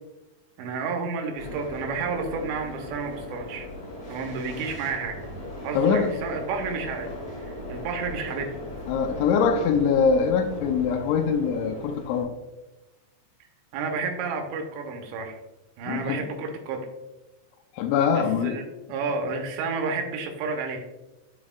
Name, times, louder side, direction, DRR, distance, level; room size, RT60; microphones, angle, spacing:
voice 1, 0.6-3.7 4.1-5.2 5.6-7.1 7.4-8.6 13.7-15.4 15.8-16.9 18.1-20.8, right 4 dB, 80° right, 3 dB, 2.7 m, -31 dB
sound 1, 1.4-12.2, left 1 dB, 55° left, 1.6 m, -38 dB
voice 2, 5.7-6.1 8.9-12.3 15.9-16.2 17.7-18.6, left 6 dB, 85° left, 6 dB, 2.6 m, -23 dB
12.0 x 4.2 x 2.3 m, 1.0 s
omnidirectional pair, 5.8 m